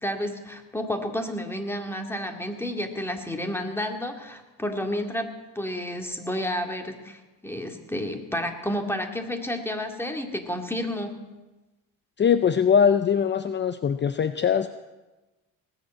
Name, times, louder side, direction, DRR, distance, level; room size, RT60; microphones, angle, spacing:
voice 1, 0.0-5.3 5.6-11.2, left 1 dB, 5° left, 4 dB, 2.2 m, -31 dB
voice 2, 12.2-14.7, left 7 dB, 30° left, 11 dB, 0.6 m, -21 dB
19.0 x 8.0 x 7.7 m, 1.1 s
supercardioid pair, 85°, 34 cm